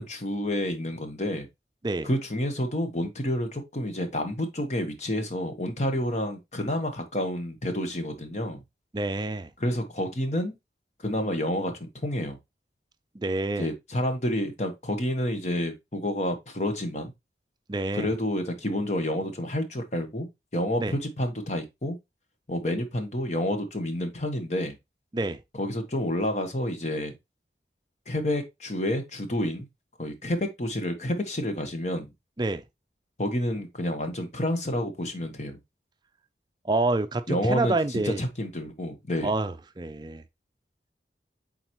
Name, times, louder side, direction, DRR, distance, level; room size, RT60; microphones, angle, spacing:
voice 1, 0.0-1.5 2.0-8.6 9.6-10.5 11.0-12.4 13.6-17.1 17.9-22.0 22.5-24.8 25.6-27.1 28.1-29.7 30.0-32.1 33.2-35.6 37.3-39.3, left 1 dB, 40° left, 1.1 m, -29 dB
voice 2, 8.9-9.5 13.1-13.7 17.7-18.1 20.8-21.0 25.1-25.4 32.4-32.6 36.6-38.2 39.2-40.2, right 2 dB, 25° right, 0.5 m, -27 dB
7.8 x 4.0 x 3.0 m
head